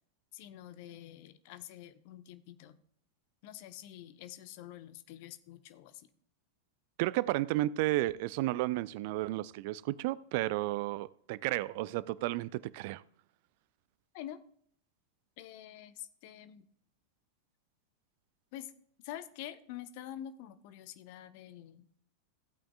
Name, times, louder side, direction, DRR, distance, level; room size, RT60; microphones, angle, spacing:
voice 1, 0.3-2.8 3.4-6.1 14.1-14.4 15.4-16.7 18.5-18.7 19.0-21.9, left 12 dB, 50° left, 0.8 m, -47 dB
voice 2, 7.0-13.0, right 17 dB, 50° right, 0.3 m, -32 dB
15.5 x 8.7 x 2.3 m
figure-of-eight pair, 90°, 0 cm